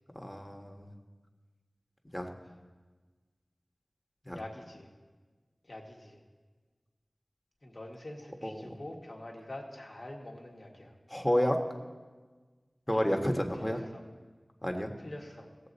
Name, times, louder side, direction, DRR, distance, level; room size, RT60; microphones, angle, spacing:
voice 1, 0.2-0.9 2.1-2.3 4.3-4.4 8.4-8.7 11.1-11.6 12.9-13.8 14.6-14.9, equal, 15° left, 3 dB, 1.3 m, -30 dB
voice 2, 4.3-4.9 5.6-6.2 7.6-10.9 12.9-13.2 13.6-14.0 15.0-15.5, left 1 dB, 60° left, 0 dB, 1.7 m, -45 dB
18.0 x 7.7 x 4.1 m, 1.4 s
wide cardioid pair, 55°, 0 cm